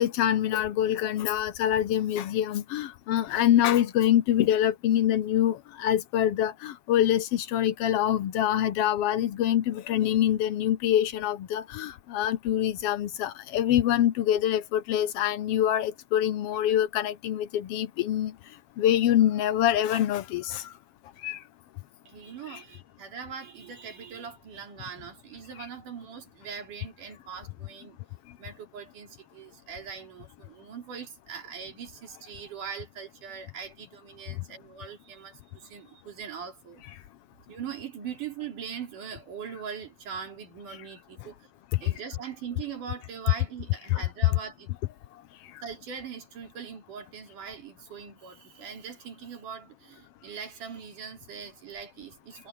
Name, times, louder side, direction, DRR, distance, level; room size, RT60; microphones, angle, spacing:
voice 1, 0.0-18.3 18.8-20.7 21.2-21.4 22.5-22.6 41.8-41.9 43.9-44.0 45.5-45.6, left 11 dB, 85° left, 1.3 m, -25 dB
voice 2, 22.1-28.0 28.4-36.8 37.5-41.5 41.8-44.7 45.6-52.5, right 7 dB, 85° right, 4.9 m, -41 dB
omnidirectional pair, 3.6 m